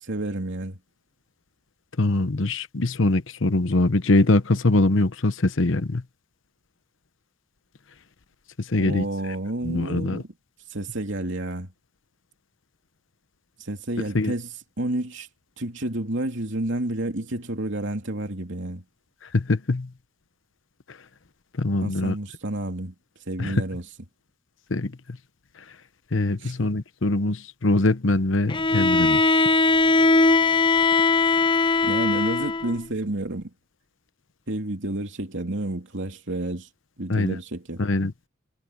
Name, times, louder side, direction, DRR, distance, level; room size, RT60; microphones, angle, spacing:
voice 1, 0.0-0.8 8.8-10.2 10.7-11.7 13.6-15.3 15.6-18.8 21.8-22.9 23.3-23.9 26.4-26.5 31.8-33.5 34.5-36.7 37.0-37.8, right 1 dB, 60° right, 3.2 m, -30 dB
voice 2, 2.0-6.0 8.6-9.0 9.6-10.2 14.1-14.3 19.3-19.9 20.9-21.0 21.6-22.1 23.4-23.5 24.7-25.2 26.1-29.3 37.1-37.4 37.8-38.1, left 2 dB, 65° left, 1.0 m, -23 dB
Bowed string instrument, 28.5-32.8, left 3 dB, 25° left, 0.6 m, -20 dB
head